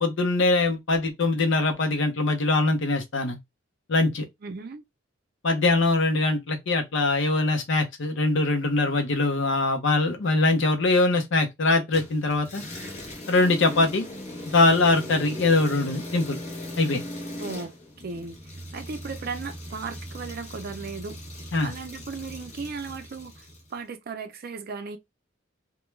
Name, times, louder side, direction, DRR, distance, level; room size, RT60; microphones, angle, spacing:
voice 1, 0.0-3.4 3.9-4.2 5.4-12.6 13.3-14.0 14.5-16.4 16.8-17.0 21.5-21.7, left 2 dB, 65° left, 0.6 m, -22 dB
voice 2, 4.4-4.8 17.4-17.7 18.0-18.4 18.7-21.2 21.6-23.5 23.7-25.0, right 4 dB, 50° right, 0.4 m, -36 dB
sound 1, 11.9-23.7, left 1 dB, 35° left, 0.9 m, -39 dB
2.2 x 2.1 x 3.1 m
head